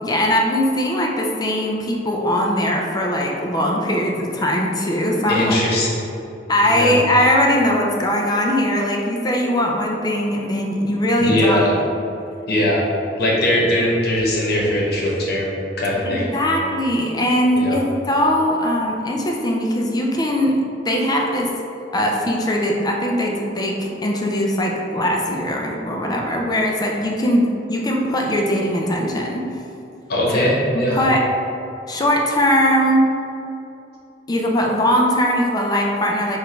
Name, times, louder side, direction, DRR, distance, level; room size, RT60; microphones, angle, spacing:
voice 1, 0.0-5.6 6.5-11.7 16.1-21.5 21.9-29.4 30.7-31.2 31.9-33.0 34.3-36.4, equal, 25° left, -1 dB, 0.4 m, -20 dB
voice 2, 5.3-5.9 6.7-7.0 11.2-11.7 12.5-12.8 13.2-16.3 17.5-17.8 30.1-31.0, left 1 dB, 60° left, -4 dB, 1.0 m, -20 dB
4.9 x 2.5 x 4.5 m, 2.8 s
head